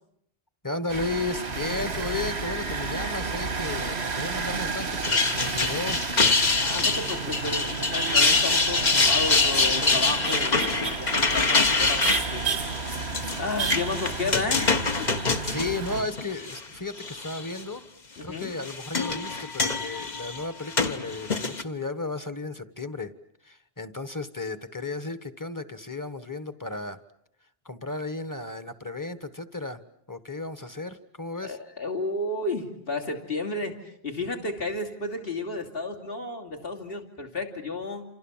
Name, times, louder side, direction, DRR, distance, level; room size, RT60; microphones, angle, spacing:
voice 1, 0.6-6.0 15.2-17.8 18.2-23.1 23.4-27.0 27.6-29.8 30.1-31.6, left 3 dB, 20° left, 12 dB, 1.3 m, -34 dB
sound 1, 0.9-16.0, right 5 dB, 85° right, 1.8 m, -32 dB
sound 2, 4.8-16.6 17.0-17.6 18.4-21.6, left 4 dB, 40° left, 1.3 m, -25 dB
voice 2, 6.6-12.7 13.4-14.7 15.0-15.1 18.2-18.5 31.4-38.0, left 2 dB, 60° left, 2 dB, 3.0 m, -32 dB
28.5 x 27.0 x 7.3 m, 0.71 s
omnidirectional pair, 1.1 m